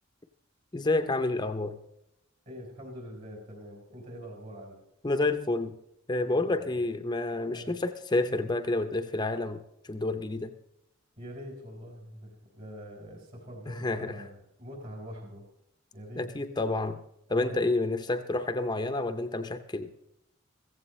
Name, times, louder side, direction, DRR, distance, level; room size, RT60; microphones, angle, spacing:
voice 1, 0.7-1.8 5.0-5.8 6.1-9.6 9.9-10.5 13.7-14.2 16.2-17.0 17.3-19.9, left 2 dB, 20° left, 9 dB, 0.6 m, -29 dB
voice 2, 2.5-4.8 6.3-6.8 7.5-7.7 11.2-15.4 15.9-16.3 17.3-17.6, equal, 45° right, 0 dB, 4.2 m, -44 dB
15.5 x 15.5 x 3.1 m, 0.82 s
head